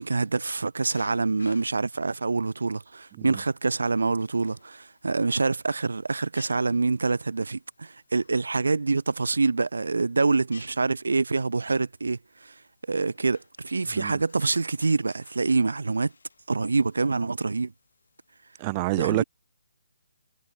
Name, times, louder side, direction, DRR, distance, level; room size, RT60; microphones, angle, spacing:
voice 1, 0.0-12.5 12.9-16.1 16.5-17.7 19.0-19.2, right 3 dB, 85° right, 0.7 m, -26 dB
sound 1, 0.8-18.6, left 4 dB, 80° left, 5.0 m, -57 dB
voice 2, 18.6-19.2, right 23 dB, 20° right, 0.7 m, -27 dB
hypercardioid pair, 165°, 0 cm